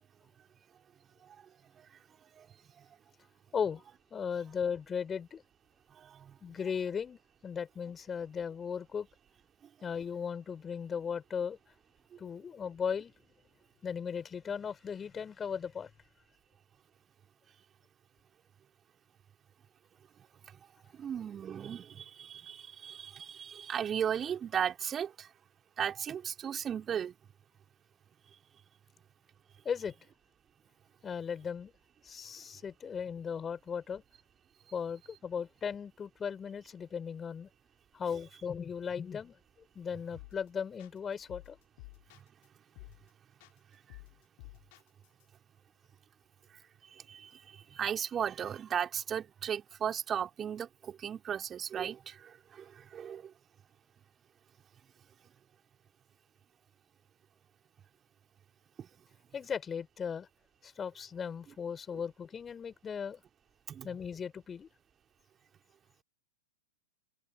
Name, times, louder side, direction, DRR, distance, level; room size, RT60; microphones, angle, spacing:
voice 1, 4.1-5.4 6.4-9.1 9.8-11.6 12.2-13.1 13.8-15.9 29.6-30.0 31.0-31.7 32.0-34.0 34.7-37.5 37.9-39.3 39.7-41.6 59.3-60.3 60.6-63.2 63.8-64.7, left 7 dB, 20° left, 5.7 m, -37 dB
voice 2, 6.0-6.3 21.0-25.3 25.8-27.1 43.9-44.0 47.1-47.3 47.7-53.2 58.8-58.9 63.7-63.9, right 8 dB, 20° right, 3.9 m, -36 dB
sound 1, 40.1-40.5 40.8-42.5 42.8-43.1 43.4-45.2, left 26 dB, 45° left, 6.8 m, -52 dB
figure-of-eight pair, 100°, 0 cm